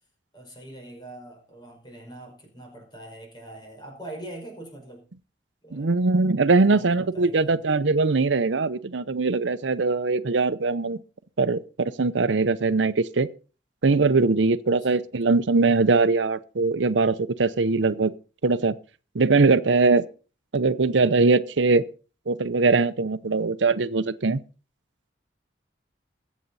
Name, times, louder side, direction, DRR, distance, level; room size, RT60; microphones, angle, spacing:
voice 1, 0.3-5.0 5.6-6.0 6.5-7.6, right 1 dB, 25° left, 5.2 m, -43 dB
voice 2, 5.7-11.0 11.4-13.3 13.8-18.1 18.4-18.7 19.1-20.1 20.5-21.8 22.3-24.4, right 3 dB, 90° right, 0.7 m, -21 dB
21.5 x 8.3 x 4.1 m
head